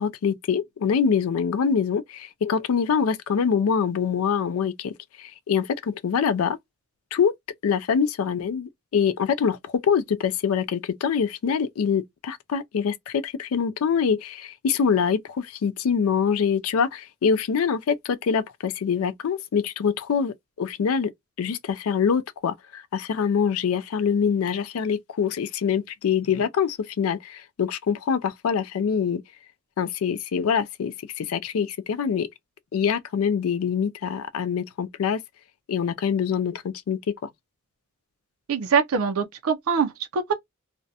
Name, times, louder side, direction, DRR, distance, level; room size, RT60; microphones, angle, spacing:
voice 1, 0.0-4.9 5.2-6.6 7.1-7.3 7.6-21.1 21.4-29.2 29.8-32.3 32.7-35.2 35.7-37.3, left 6 dB, 80° left, 0.4 m, -24 dB
voice 2, 38.5-40.3, right 5 dB, 85° right, 0.4 m, -23 dB
2.4 x 2.1 x 2.6 m
head